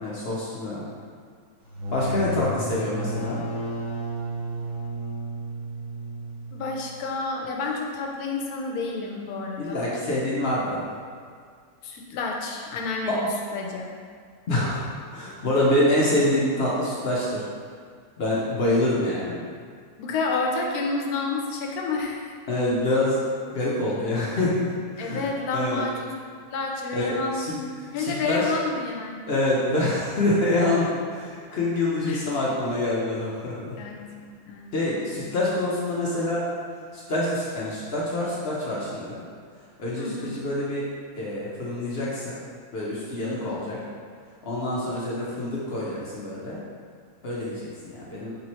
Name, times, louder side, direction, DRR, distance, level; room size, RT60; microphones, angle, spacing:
voice 1, 0.0-0.9 1.9-3.4 9.6-10.8 13.1-13.2 14.5-17.4 18.2-19.4 22.5-23.2 23.5-25.9 26.9-27.6 28.0-28.4 29.3-33.8 34.7-36.4 36.9-39.2 39.8-40.9 41.1-42.4 42.7-43.8 44.4-46.6 47.2-48.4, left 1 dB, 60° left, -6 dB, 0.7 m, -26 dB
sound 1, 1.6-7.1, right 1 dB, 35° right, 0.8 m, -32 dB
voice 2, 6.5-10.0 11.8-13.9 20.0-22.3 25.0-26.1 26.5-29.4 32.1-32.3 33.8-35.3 40.0-40.4 43.4-43.8, left 3 dB, 75° left, 0 dB, 1.1 m, -30 dB
3.3 x 3.0 x 4.1 m, 2.1 s
omnidirectional pair, 1.7 m